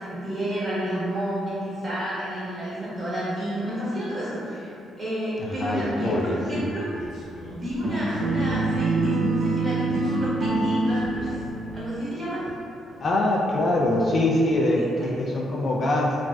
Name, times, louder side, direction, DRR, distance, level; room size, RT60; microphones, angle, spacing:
voice 1, 0.0-4.7 5.0-6.9 7.5-11.4 11.7-12.4 14.6-14.7 15.0-15.1, equal, 30° right, -11 dB, 1.4 m, -30 dB
voice 2, 5.4-6.7 13.0-16.2, left 1 dB, 45° left, -2 dB, 0.3 m, -23 dB
sound 1, 6.9-9.0 9.8-11.8 12.1-13.1 13.4-14.1, equal, 60° left, 1.0 m, -43 dB
sound 2, 7.8-12.0, right 3 dB, 65° right, 0.6 m, -25 dB
3.1 x 2.4 x 2.3 m, 2.6 s
cardioid pair, 90°, 0 cm